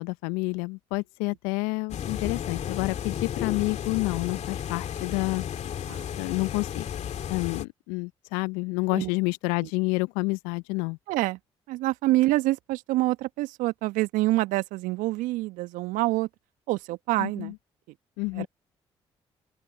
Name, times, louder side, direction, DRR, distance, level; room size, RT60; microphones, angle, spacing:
voice 1, 0.0-5.4 6.2-6.9 7.3-11.0 17.2-17.5 18.2-18.5, left 27 dB, 75° left, 0.9 m, -29 dB
sound 1, 1.9-7.6, left 9 dB, 55° left, 2.6 m, -33 dB
voice 2, 11.1-11.4 11.7-16.3 16.7-17.5 18.3-18.5, right 19 dB, 70° right, 1.3 m, -26 dB
open air
hypercardioid pair, 45°, 14 cm